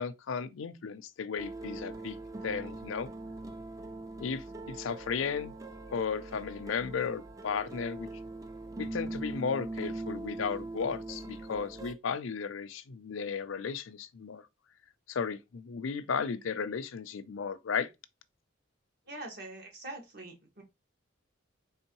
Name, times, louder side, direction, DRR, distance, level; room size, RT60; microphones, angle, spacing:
voice 1, 0.0-2.2 2.4-3.1 4.2-5.5 5.9-8.1 8.8-14.5 15.1-17.9, left 6 dB, 75° left, 0.5 m, -35 dB
Guitar harmonics A minor, 1.4-11.9, right 2 dB, 15° right, 0.3 m, -42 dB
voice 2, 19.1-20.6, right 2 dB, 50° right, 1.5 m, -44 dB
4.4 x 3.4 x 3.0 m
head